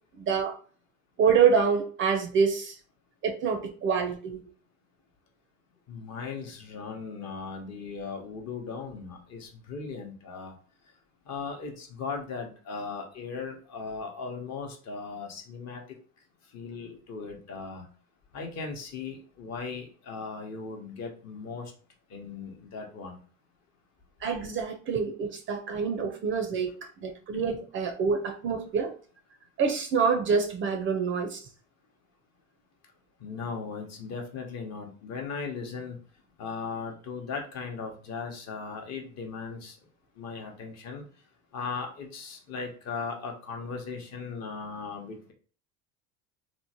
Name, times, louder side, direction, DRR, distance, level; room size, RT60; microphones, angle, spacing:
voice 1, 0.2-0.6 1.2-2.7 3.2-4.4 24.2-26.7 27.0-29.0 29.6-31.4, right 6 dB, 30° right, 4 dB, 0.4 m, -26 dB
voice 2, 5.9-10.5 11.3-15.8 16.5-17.8 18.3-21.7 22.1-23.2 33.2-36.0 36.4-39.8 40.2-41.0 41.5-45.3, left 5 dB, 40° left, 2 dB, 0.8 m, -38 dB
2.9 x 2.0 x 2.7 m, 0.41 s
hypercardioid pair, 80°, 40 cm